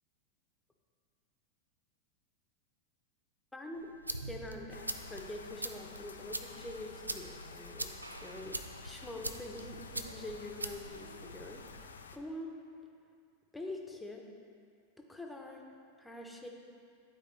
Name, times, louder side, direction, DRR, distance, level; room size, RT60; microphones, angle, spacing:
voice 1, 3.5-3.9 4.3-12.6 13.5-14.3 15.0-15.6 16.0-16.5, left 1 dB, 5° left, 1 dB, 0.9 m, -45 dB
sound 1, 3.7-11.8, right 2 dB, 80° right, 0.3 m, -44 dB
sound 2, 4.7-12.2, left 4 dB, 70° left, 0.4 m, -51 dB
12.0 x 4.5 x 3.2 m, 2.3 s
figure-of-eight pair, 90°, 0 cm